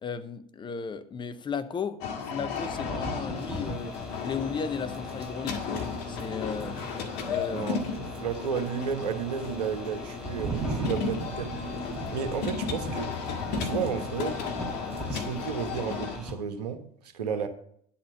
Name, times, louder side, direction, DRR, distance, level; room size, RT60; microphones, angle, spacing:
voice 1, 0.0-2.0 2.3-3.9 4.2-5.6 6.1-6.7 7.2-7.7 17.2-17.4, left 6 dB, 25° left, 0.7 m, -35 dB
sound 1, 2.0-16.2, left 6 dB, 60° left, 1.7 m, -34 dB
sound 2, 2.7-16.3, right 1 dB, ahead, 3.4 m, -40 dB
sound 3, 3.4-15.9, right 8 dB, 30° right, 0.7 m, -43 dB
voice 2, 8.2-13.1 13.6-14.4 15.1-17.5, right 7 dB, 80° right, 1.2 m, -33 dB
10.0 x 4.4 x 7.6 m
hypercardioid pair, 85°, 20 cm